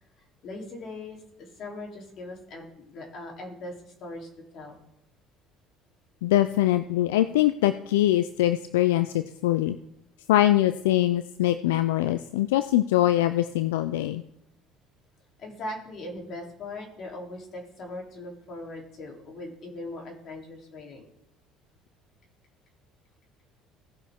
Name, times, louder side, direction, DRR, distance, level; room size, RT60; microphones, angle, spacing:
voice 1, 0.4-4.8 15.4-21.1, left 2 dB, 55° left, 0 dB, 3.2 m, -40 dB
voice 2, 6.2-9.8 10.3-14.2, left 14 dB, 90° left, 12 dB, 0.4 m, -23 dB
17.0 x 6.3 x 3.6 m, 0.86 s
supercardioid pair, 80°, 0 cm